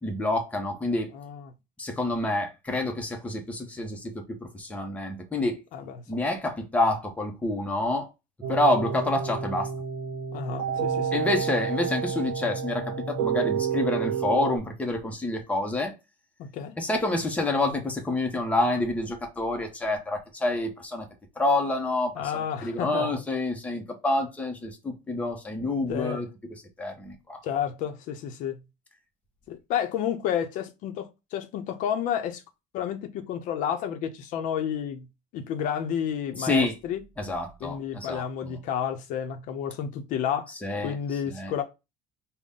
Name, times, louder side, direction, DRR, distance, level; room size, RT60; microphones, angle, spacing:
voice 1, 0.0-1.1 1.8-5.6 6.1-8.1 8.5-9.7 11.1-15.9 16.8-21.1 21.4-22.2 22.6-26.3 26.8-27.4 36.4-36.7 37.2-38.5 40.6-41.0 41.3-41.5, left 2 dB, 10° left, 0.8 m, -28 dB
sound 1, 8.4-14.6, right 7 dB, 65° right, 0.9 m, -29 dB
voice 2, 10.3-11.2 16.4-16.7 22.2-23.1 25.9-26.2 27.4-28.6 29.5-32.4 32.7-35.1 35.3-37.0 37.6-40.5 40.8-41.6, left 9 dB, 60° left, 0.7 m, -31 dB
3.9 x 2.2 x 3.5 m
cardioid pair, 140°, 15 cm